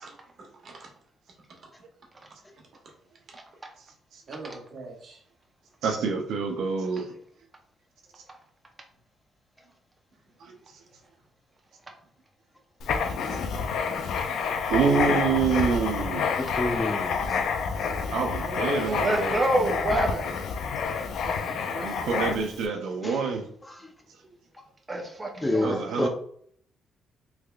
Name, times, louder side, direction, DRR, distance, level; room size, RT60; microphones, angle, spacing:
voice 1, 0.0-0.9 1.5-1.7 2.1-2.3 2.8-2.9 3.3-3.4 4.3-5.2 8.2-8.3 10.4-10.6 18.4-19.1 24.2-24.4, right 3 dB, 55° right, 0 dB, 1.2 m, -41 dB
voice 2, 5.8-7.1 10.4-10.5 13.0-13.4 14.7-16.4 18.1-19.4 21.7-23.4 25.6-26.1, right 5 dB, 80° right, 2 dB, 0.5 m, -27 dB
Writing, 12.8-22.6, left 5 dB, 75° left, 0.4 m, -28 dB
voice 3, 16.4-17.2 20.8-21.1 23.0-23.2 25.4-26.1, left 1 dB, 15° left, 3 dB, 0.6 m, -28 dB
voice 4, 19.0-20.3 21.2-22.4 24.9-26.1, right 2 dB, 20° right, 2 dB, 0.7 m, -29 dB
3.4 x 3.2 x 2.3 m, 0.63 s
cardioid pair, 90°, 0 cm